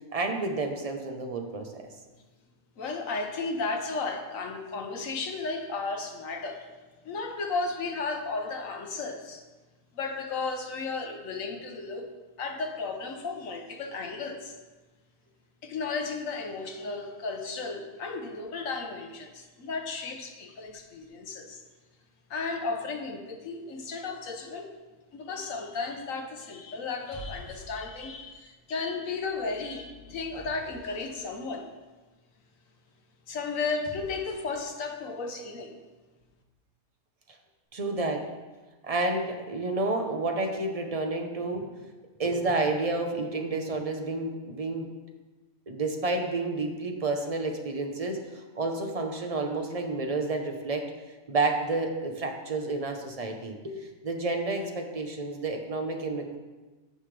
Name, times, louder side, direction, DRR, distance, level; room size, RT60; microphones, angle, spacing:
voice 1, 0.1-1.8 37.7-38.3 38.8-41.9 42.2-44.9 45.7-50.9 51.3-56.4, right 3 dB, 30° right, 3 dB, 0.9 m, -30 dB
voice 2, 2.8-6.7 7.0-9.4 9.9-12.1 12.4-14.6 15.6-21.6 22.3-24.7 25.1-31.7 33.3-35.8, left 4 dB, 75° left, 4 dB, 1.4 m, -34 dB
sound 1, 25.6-26.1 26.9-28.2 29.0-31.3 33.6-34.6, left 1 dB, 25° left, 3.1 m, -48 dB
15.0 x 5.7 x 3.3 m, 1.2 s
omnidirectional pair, 1.4 m